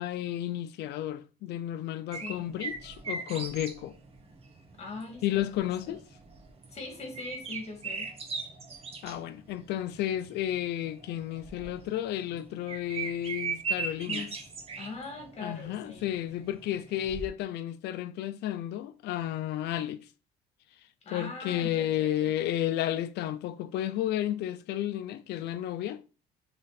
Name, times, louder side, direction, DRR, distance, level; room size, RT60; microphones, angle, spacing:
voice 1, 0.0-3.9 5.2-6.0 9.0-14.3 15.4-20.0 21.1-26.0, left 12 dB, 80° left, 0.7 m, -32 dB
voice 2, 2.1-2.5 4.8-6.0 6.7-8.1 14.1-14.4 14.8-16.1 21.0-22.3, left 3 dB, 40° left, 2.3 m, -42 dB
sound 1, 2.1-17.3, right 4 dB, 35° right, 1.6 m, -39 dB
6.2 x 3.9 x 4.1 m
cardioid pair, 110°, 17 cm